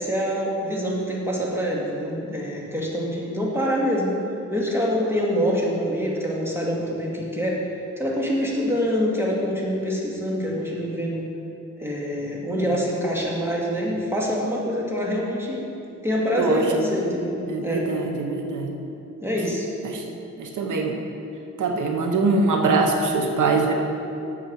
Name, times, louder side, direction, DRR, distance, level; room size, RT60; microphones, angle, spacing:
voice 1, 0.0-4.1 4.5-7.6 8.0-11.3 11.8-15.7 16.0-17.9 19.2-19.7, equal, 10° right, -4 dB, 2.1 m, -25 dB
voice 2, 16.4-16.9 17.5-18.7 19.8-20.0 20.4-21.0 21.6-23.7, right 3 dB, 90° right, 3 dB, 1.0 m, -23 dB
8.5 x 7.3 x 6.4 m, 2.7 s
cardioid pair, 95°, 30 cm